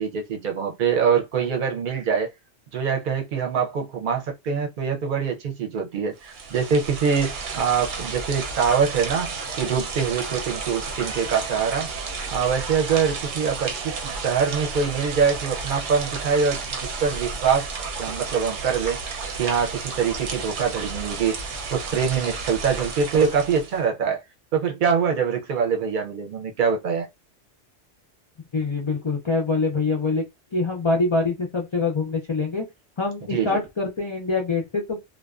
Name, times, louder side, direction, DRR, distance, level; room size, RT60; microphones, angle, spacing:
voice 1, 0.0-2.3 2.7-11.9 12.3-16.6 17.0-17.7 18.0-19.0 19.4-21.4 21.7-24.2 24.5-27.1 33.3-33.6, right 6 dB, 55° right, 0.7 m, -24 dB
sound 1, 6.2-23.8, right 4 dB, 85° right, 1.0 m, -32 dB
voice 2, 28.5-30.2 30.5-32.6 33.0-35.0, left 3 dB, 50° left, 0.3 m, -24 dB
2.4 x 2.1 x 2.3 m
omnidirectional pair, 1.2 m